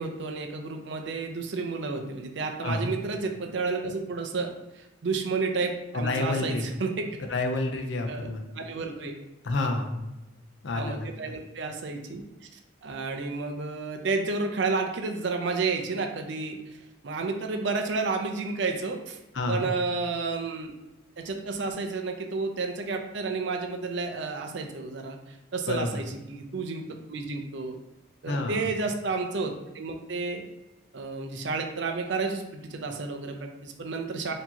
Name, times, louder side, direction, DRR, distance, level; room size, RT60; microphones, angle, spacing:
voice 1, 0.0-7.1 8.1-9.1 10.8-12.2 12.8-16.6 17.0-19.2 19.5-20.7 21.2-26.8 27.1-27.8 28.2-30.4 30.9-34.3, right 4 dB, 60° right, 3 dB, 0.5 m, -31 dB
voice 2, 5.9-6.6 7.3-8.5 9.4-10.1 10.6-11.3 19.3-19.7 25.7-26.0 28.3-28.7, left 2 dB, 60° left, 4 dB, 0.5 m, -29 dB
4.4 x 2.8 x 2.8 m, 0.99 s
head